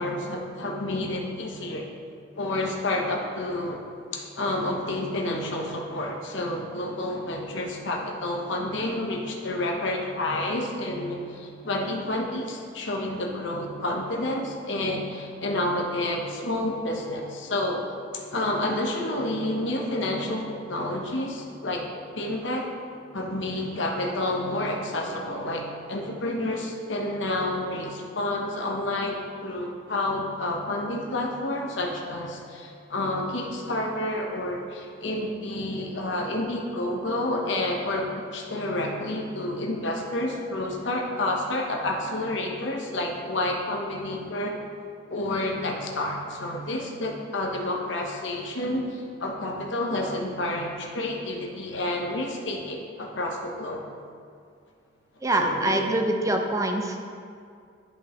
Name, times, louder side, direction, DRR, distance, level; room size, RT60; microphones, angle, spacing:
voice 1, 0.0-1.9 2.4-3.8 4.1-17.8 18.1-21.8 22.1-22.7 23.1-44.6 45.1-53.8 55.3-55.9, left 1 dB, 65° left, 0 dB, 0.9 m, -29 dB
voice 2, 55.2-57.1, right 1 dB, 15° right, 3 dB, 0.5 m, -25 dB
11.0 x 5.2 x 3.0 m, 2.3 s
head